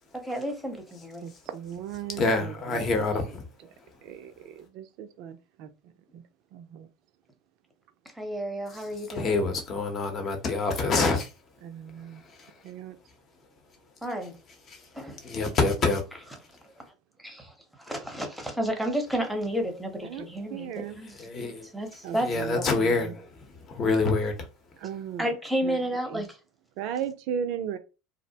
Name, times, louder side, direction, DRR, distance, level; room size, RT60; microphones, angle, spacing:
voice 1, 0.1-1.2 8.2-9.4 14.0-14.3 14.9-15.2 17.2-17.5 17.8-22.3 22.6-22.7 25.2-26.4, equal, ahead, 0.8 m, -31 dB
voice 2, 1.2-3.1 4.0-6.2 6.5-6.9 11.6-12.2 12.6-13.0 20.0-21.0 22.0-23.1 24.8-25.3 25.6-26.2 26.8-27.8, right 8 dB, 60° right, 0.4 m, -37 dB
voice 3, 2.2-3.5 8.7-8.8 9.1-11.3 12.4-12.5 14.7-14.8 15.2-16.3 21.2-21.7 22.2-23.4 23.7-24.5, left 3 dB, 40° left, 0.8 m, -26 dB
2.5 x 2.0 x 2.7 m
hypercardioid pair, 85°, 0 cm